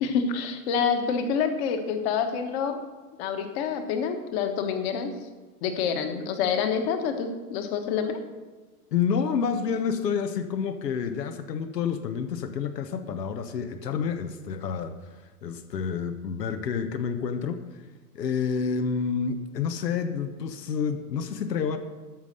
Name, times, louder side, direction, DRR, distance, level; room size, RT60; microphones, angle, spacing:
voice 1, 0.0-2.8 3.2-5.1 5.6-8.2, left 6 dB, 40° left, 6 dB, 1.4 m, -27 dB
voice 2, 8.9-15.0 15.4-17.6 18.1-21.8, left 6 dB, 85° left, 9 dB, 1.1 m, -29 dB
13.0 x 5.6 x 6.6 m, 1.3 s
hypercardioid pair, 140°, 48 cm